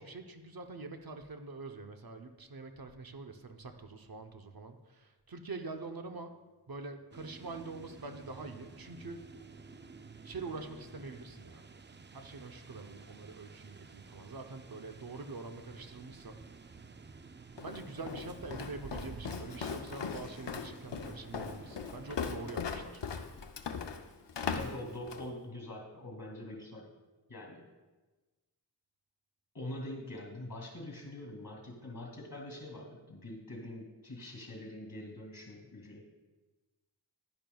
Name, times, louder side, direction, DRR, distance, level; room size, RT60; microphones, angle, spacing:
voice 1, 0.0-6.3 6.7-9.2 10.2-11.7 12.1-16.4 17.6-23.0, right 3 dB, 60° right, 6 dB, 0.7 m, -45 dB
sound 1, 7.1-22.6, right 4 dB, 30° right, 0.4 m, -52 dB
Walk footsteps, 17.6-25.3, left 6 dB, 90° left, 0.6 m, -39 dB
voice 2, 24.5-26.9 27.3-27.7 29.5-36.1, left 1 dB, 55° left, 1 dB, 2.4 m, -44 dB
11.0 x 10.5 x 2.3 m, 1.2 s
wide cardioid pair, 60°, 41 cm